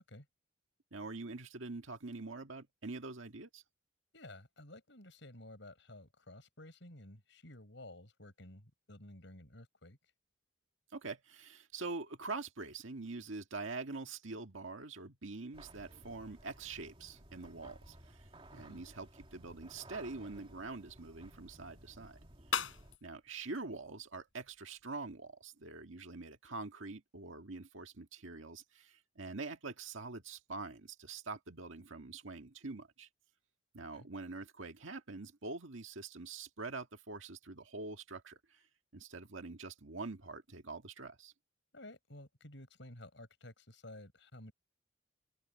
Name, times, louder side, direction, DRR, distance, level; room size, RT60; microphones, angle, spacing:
voice 1, 0.9-3.6 10.9-22.2 23.0-33.1 33.7-38.6 38.9-41.3, right 3 dB, 85° right, 1.8 m, -45 dB
voice 2, 4.1-10.0 18.5-18.8 22.6-22.7 33.7-34.1 41.7-44.5, left 1 dB, 65° left, 5.9 m, -53 dB
sound 1, 15.5-23.0, right 1 dB, 30° right, 2.5 m, -57 dB
sound 2, 19.3-24.8, left 7 dB, 85° left, 5.8 m, -45 dB
open air
head